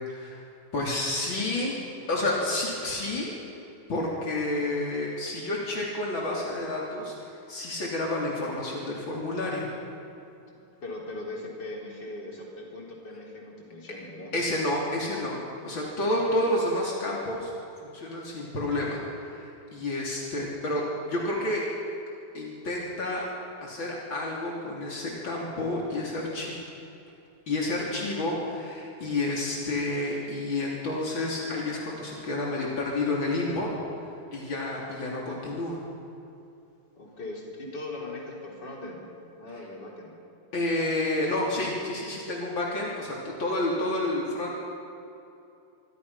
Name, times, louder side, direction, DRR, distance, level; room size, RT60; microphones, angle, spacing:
voice 1, 0.1-0.4 0.7-1.8 2.1-3.3 3.9-9.7 14.3-17.5 17.8-19.0 19.3-20.8 21.1-21.7 22.3-23.3 23.6-26.6 27.5-33.7 34.3-35.8 40.5-44.5, left 2 dB, 80° left, -3 dB, 3.9 m, -30 dB
voice 2, 10.8-14.3 37.0-39.1 39.3-40.1, left 2 dB, 60° left, -2 dB, 4.4 m, -39 dB
25.5 x 24.0 x 5.7 m, 2.7 s
omnidirectional pair, 2.1 m